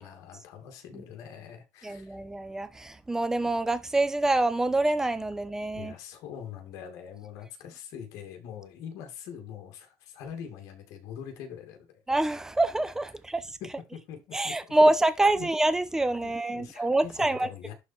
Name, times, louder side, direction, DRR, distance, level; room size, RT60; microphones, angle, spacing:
voice 1, 0.0-2.2 5.7-12.0 13.6-14.5 15.4-15.5 16.2-17.7, left 8 dB, 70° left, 2.4 m, -43 dB
voice 2, 1.8-5.9 12.1-13.5 14.3-17.5, right 2 dB, 10° right, 0.9 m, -26 dB
11.5 x 4.1 x 4.4 m
cardioid pair, 130°, 6 cm